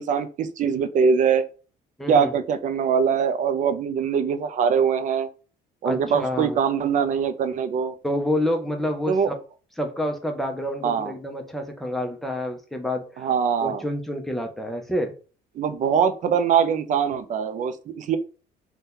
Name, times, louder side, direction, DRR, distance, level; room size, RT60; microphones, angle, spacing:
voice 1, 0.0-1.4 2.1-5.3 5.8-7.9 9.1-9.3 10.8-11.1 13.2-13.8 15.6-18.2, right 7 dB, 50° right, 0.4 m, -22 dB
voice 2, 2.0-2.3 5.8-6.6 8.0-9.3 9.8-13.3 13.6-15.2, left 1 dB, ahead, 0.6 m, -28 dB
2.7 x 2.2 x 3.6 m
cardioid pair, 110°, 17 cm